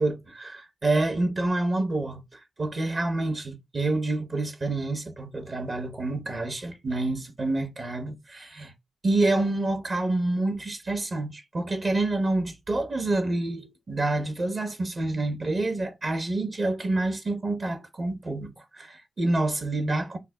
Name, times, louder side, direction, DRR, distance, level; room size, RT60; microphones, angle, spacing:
voice 1, 0.0-8.7 9.0-20.2, right 2 dB, 50° right, 0.9 m, -28 dB
3.4 x 2.1 x 3.3 m
cardioid pair, 55°, 0 cm